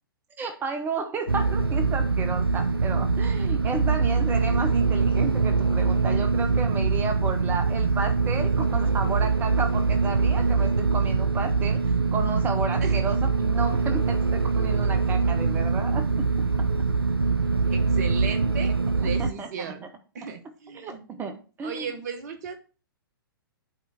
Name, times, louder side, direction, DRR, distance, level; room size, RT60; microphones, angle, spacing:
voice 1, 0.4-16.7 19.0-19.7 20.7-21.9, right 4 dB, 15° right, 7 dB, 0.7 m, -33 dB
sound 1, 1.3-19.3, right 4 dB, 90° right, 0.4 m, -23 dB
voice 2, 17.7-19.9 20.1-21.1 21.6-22.5, right 6 dB, 50° right, 8 dB, 1.1 m, -36 dB
8.0 x 3.2 x 6.3 m, 0.37 s
figure-of-eight pair, 110°, 12 cm